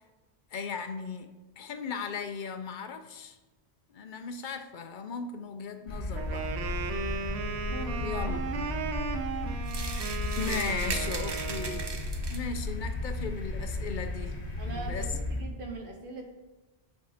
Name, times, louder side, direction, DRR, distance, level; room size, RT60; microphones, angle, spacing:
voice 1, 0.5-1.3 1.6-3.4 3.9-6.5 8.0-8.4 10.4-11.9 12.3-15.1, left 5 dB, 60° left, 8 dB, 0.6 m, -37 dB
sound 1, 5.9-15.4, left 2 dB, 40° left, 0.9 m, -34 dB
Wind instrument woodwind instrument, 6.1-12.0, right 5 dB, 80° right, 0.9 m, -36 dB
voice 2, 7.7-8.2 8.7-8.9 14.6-16.2, right 3 dB, 55° right, 2 dB, 1.1 m, -41 dB
sound 2, 9.7-12.6, right 4 dB, 35° right, 0.4 m, -38 dB
7.4 x 3.5 x 4.2 m, 1.2 s
omnidirectional pair, 1.1 m